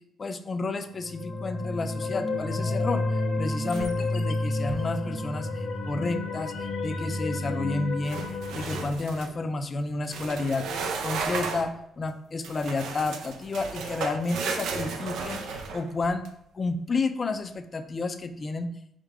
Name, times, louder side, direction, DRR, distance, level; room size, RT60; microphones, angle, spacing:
voice 1, 0.2-16.2 16.5-18.7, left 3 dB, 35° left, 8 dB, 0.4 m, -31 dB
sound 1, 1.0-8.9, left 2 dB, 55° left, 0.9 m, -30 dB
sound 2, 3.7-4.2 4.5-4.9 8.0-9.3 10.0-11.7 12.4-16.3, right 4 dB, 80° right, 0.5 m, -34 dB
5.0 x 2.2 x 4.8 m, 0.74 s
cardioid pair, 90°, 0 cm